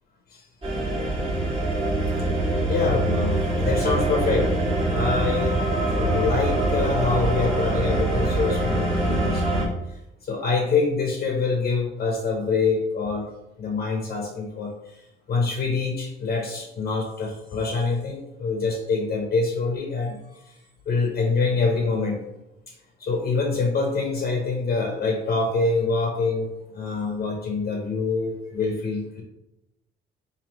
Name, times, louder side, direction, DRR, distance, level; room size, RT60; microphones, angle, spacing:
sound 1, 0.6-9.7, right 2 dB, 25° right, 1.3 m, -24 dB
voice 1, 2.7-5.6 6.0-13.3 13.6-20.5 20.9-22.2 22.7-22.8 23.0-29.2, left 4 dB, 50° left, 1 dB, 0.7 m, -25 dB
3.1 x 2.7 x 4.1 m, 0.92 s
cardioid pair, 90°, 20 cm